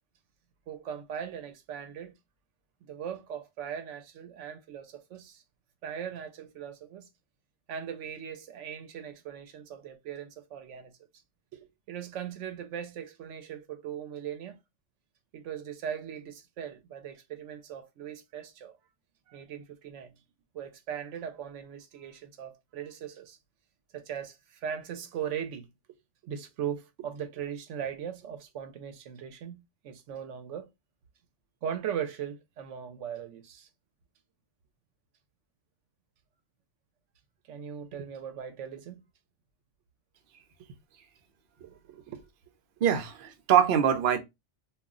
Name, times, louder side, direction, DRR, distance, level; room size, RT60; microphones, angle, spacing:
voice 1, 0.7-2.1 2.8-5.4 5.8-7.1 7.7-10.9 11.5-14.6 15.3-18.8 19.3-20.1 20.5-23.4 23.9-26.0 26.2-30.7 31.6-33.7 37.5-39.0 41.6-42.3, right 8 dB, 85° right, 0.9 m, -39 dB
voice 2, 42.8-44.2, right 9 dB, 55° right, 0.7 m, -23 dB
2.3 x 2.1 x 3.6 m
omnidirectional pair, 1.2 m